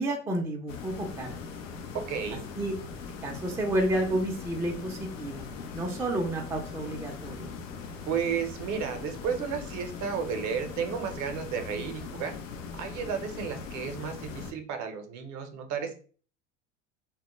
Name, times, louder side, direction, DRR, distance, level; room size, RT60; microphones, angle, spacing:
voice 1, 0.0-1.3 2.6-2.7 3.2-5.4 5.7-7.5, right 1 dB, 10° right, 1 dB, 0.4 m, -30 dB
sound 1, 0.7-14.5, left 5 dB, 90° left, 0.5 m, -40 dB
voice 2, 2.1-2.4 8.1-12.3 12.7-15.9, right 6 dB, 50° right, 6 dB, 0.6 m, -33 dB
2.2 x 2.1 x 2.9 m, 0.41 s
hypercardioid pair, 80°, 38 cm